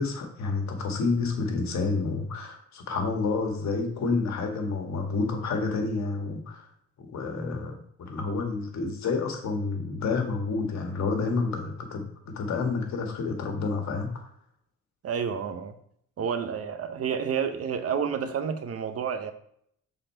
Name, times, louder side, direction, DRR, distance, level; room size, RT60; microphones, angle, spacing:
voice 1, 0.0-6.7 7.0-14.3, left 4 dB, 65° left, 3 dB, 1.7 m, -29 dB
voice 2, 15.0-15.7 16.2-19.3, right 7 dB, 50° right, 9 dB, 0.8 m, -30 dB
6.6 x 4.0 x 4.5 m, 0.68 s
cardioid pair, 90°, 30 cm